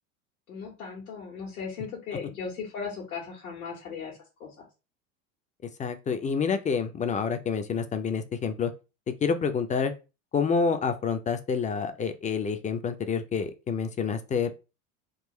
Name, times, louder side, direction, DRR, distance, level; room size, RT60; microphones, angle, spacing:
voice 1, 0.5-4.6, left 5 dB, 85° left, -3 dB, 1.3 m, -37 dB
voice 2, 5.8-8.7 9.2-9.9 10.3-14.5, left 6 dB, 20° left, 9 dB, 0.4 m, -28 dB
3.7 x 2.5 x 3.0 m, 0.30 s
hypercardioid pair, 85°, 42 cm